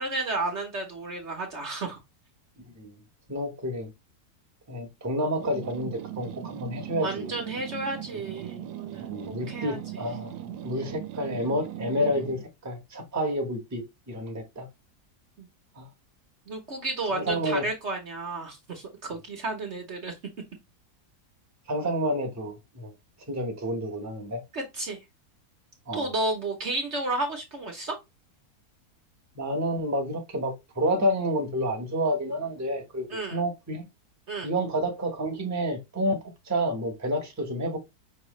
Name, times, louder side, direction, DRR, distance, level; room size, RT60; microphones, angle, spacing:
voice 1, 0.0-2.0 7.0-9.1 9.5-9.8 15.4-15.5 16.5-20.1 24.5-25.0 25.9-28.0 33.1-33.4 34.3-34.5, right 2 dB, 50° right, 1.1 m, -32 dB
voice 2, 2.6-2.9 3.3-3.9 4.7-7.4 9.0-10.4 10.6-14.7 15.8-15.9 17.1-17.7 21.7-22.9 23.3-24.4 25.9-26.1 29.3-33.9 34.4-36.2 36.4-37.8, equal, 10° right, 1.0 m, -29 dB
sound 1, 5.4-12.5, right 11 dB, 80° right, 1.2 m, -39 dB
5.5 x 3.0 x 3.1 m
omnidirectional pair, 1.7 m